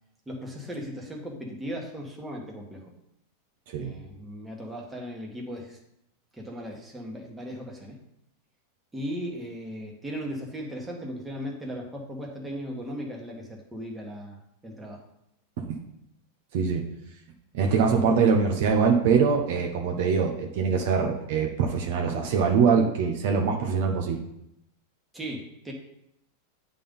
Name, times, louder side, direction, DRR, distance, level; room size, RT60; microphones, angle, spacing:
voice 1, 0.3-2.8 3.8-5.8 6.3-8.0 8.9-15.0 25.1-25.7, equal, 10° right, -1 dB, 1.6 m, -37 dB
voice 2, 16.5-16.8 17.5-24.2, right 5 dB, 65° right, 2 dB, 1.1 m, -23 dB
8.4 x 3.8 x 5.5 m, 0.79 s
hypercardioid pair, 120°, 0 cm